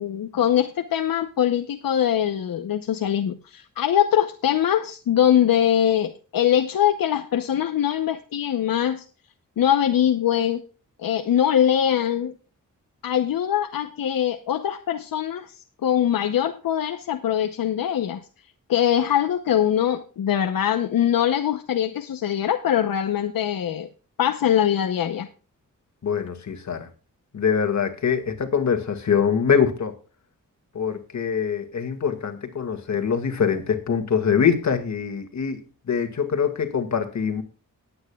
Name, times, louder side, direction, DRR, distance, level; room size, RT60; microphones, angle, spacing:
voice 1, 0.0-9.0 9.6-10.6 11.0-12.3 13.0-15.5 15.8-18.2 18.7-23.9 24.2-25.3, left 10 dB, 90° left, 6 dB, 0.8 m, -22 dB
voice 2, 26.0-26.9 27.3-29.9 30.7-37.4, left 7 dB, 55° left, 7 dB, 2.0 m, -24 dB
19.0 x 9.0 x 2.3 m, 0.35 s
wide cardioid pair, 150°, 33 cm